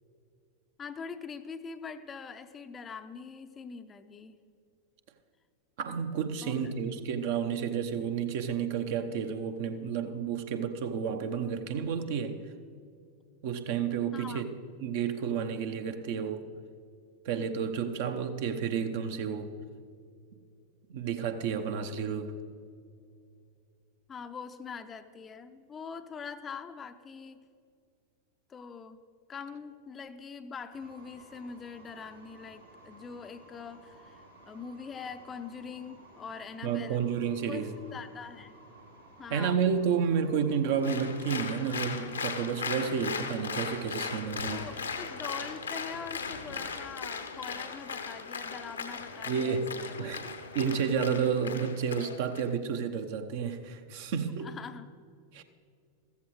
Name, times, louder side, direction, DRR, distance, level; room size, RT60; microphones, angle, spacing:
voice 1, 0.8-4.4 6.4-6.7 14.1-14.4 24.1-27.4 28.5-29.0 29.3-37.0 37.4-37.7 37.9-38.6 39.2-39.6 44.5-50.1 54.4-54.9, left 5 dB, 20° left, 0.6 m, -43 dB
voice 2, 5.8-12.4 13.4-14.4 14.8-16.4 17.2-19.5 20.9-22.4 36.6-37.7 39.3-44.7 49.3-49.7 50.0-50.2 50.5-54.5 55.3-55.4, right 7 dB, 50° right, 0.8 m, -31 dB
sound 1, 30.7-45.4, right 2 dB, 85° right, 2.7 m, -55 dB
Applause, 40.8-52.5, left 5 dB, 75° left, 0.9 m, -38 dB
15.0 x 14.0 x 3.1 m
figure-of-eight pair, 90°, 0 cm